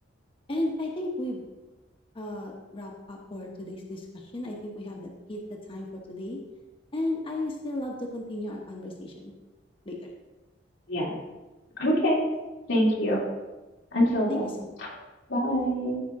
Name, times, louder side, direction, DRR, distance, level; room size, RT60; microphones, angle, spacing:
voice 1, 0.5-1.4 2.1-6.4 6.9-9.3 9.8-10.1 14.3-14.7, left 1 dB, 30° left, -1 dB, 1.1 m, -34 dB
voice 2, 11.8-12.2 12.7-13.2 13.9-14.5 14.8-14.9 15.3-16.0, equal, 90° left, -4 dB, 2.9 m, -25 dB
14.5 x 5.3 x 3.7 m, 1.1 s
head